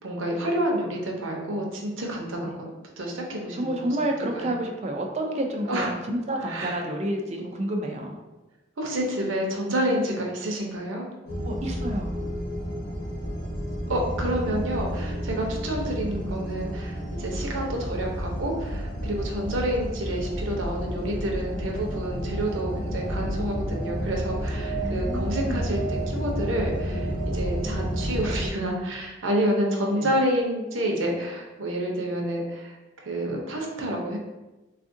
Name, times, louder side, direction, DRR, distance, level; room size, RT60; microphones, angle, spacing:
voice 1, 0.0-3.9 4.3-4.5 5.6-5.9 6.4-6.8 8.8-11.1 13.9-32.7 33.0-34.2, right 1 dB, 90° right, 0 dB, 0.7 m, -29 dB
voice 2, 3.5-8.1 11.4-12.1 24.8-25.6 29.6-30.1, right 1 dB, 35° right, 2 dB, 0.4 m, -29 dB
sound 1, 11.3-28.5, equal, 50° left, 0.7 m, -30 dB
3.5 x 2.4 x 2.6 m, 1.1 s
head